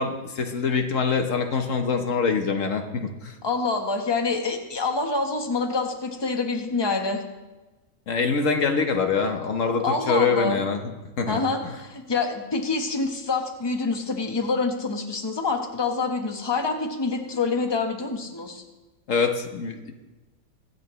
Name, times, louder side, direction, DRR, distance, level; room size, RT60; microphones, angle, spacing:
voice 1, 0.0-3.3 8.1-10.8 11.2-11.7 19.1-19.9, left 5 dB, 50° left, 5 dB, 1.2 m, -24 dB
voice 2, 3.4-7.2 9.8-10.6 11.3-18.6, left 3 dB, 15° left, 3 dB, 1.0 m, -26 dB
23.5 x 8.3 x 3.2 m, 1.2 s
omnidirectional pair, 1.9 m